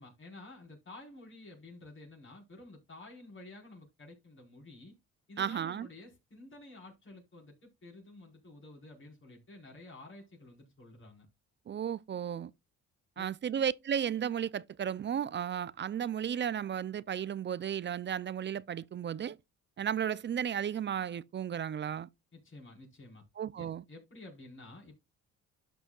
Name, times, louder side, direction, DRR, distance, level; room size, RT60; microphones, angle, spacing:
voice 1, 0.0-5.0 5.3-11.3 13.2-13.3 22.3-23.2 23.6-25.0, left 2 dB, 40° left, 4.4 m, -51 dB
voice 2, 5.4-5.9 11.7-12.5 13.2-19.4 19.8-22.1 23.4-23.8, right 9 dB, 40° right, 0.4 m, -34 dB
12.5 x 6.1 x 2.3 m
cardioid pair, 90°, 30 cm